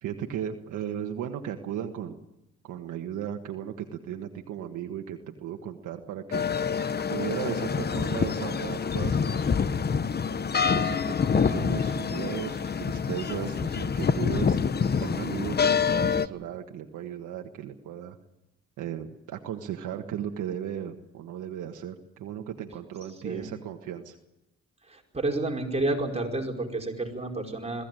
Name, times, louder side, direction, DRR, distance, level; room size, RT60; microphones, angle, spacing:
voice 1, 0.0-2.2 2.6-6.8 7.1-9.5 10.7-14.6 15.0-18.2 18.8-24.2, right 9 dB, 80° right, 4 dB, 1.6 m, -36 dB
sound 1, 6.3-16.3, left 6 dB, 35° left, 0.9 m, -26 dB
voice 2, 23.2-23.5 24.8-27.9, right 2 dB, 20° right, 1 dB, 4.8 m, -30 dB
22.0 x 15.5 x 9.1 m, 0.90 s
cardioid pair, 90°, 30 cm